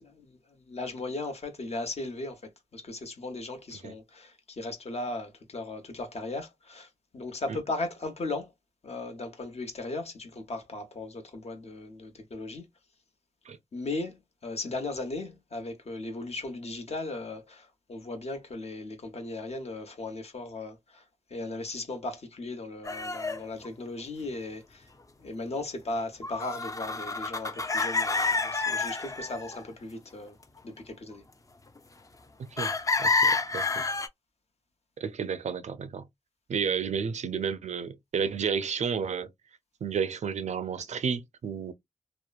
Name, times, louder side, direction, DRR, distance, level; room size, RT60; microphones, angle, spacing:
voice 1, 0.0-8.5 8.8-12.7 13.7-21.0 21.3-24.9 25.2-30.4 30.6-31.2, left 2 dB, 60° left, 0.9 m, -37 dB
sound 1, 22.8-23.7 26.2-29.6 32.6-34.1, left 3 dB, 30° left, 0.4 m, -28 dB
voice 2, 32.5-33.6 35.0-36.1 36.5-39.3 39.8-41.7, right 6 dB, 75° right, 0.4 m, -31 dB
2.9 x 2.0 x 2.3 m
cardioid pair, 60°, 12 cm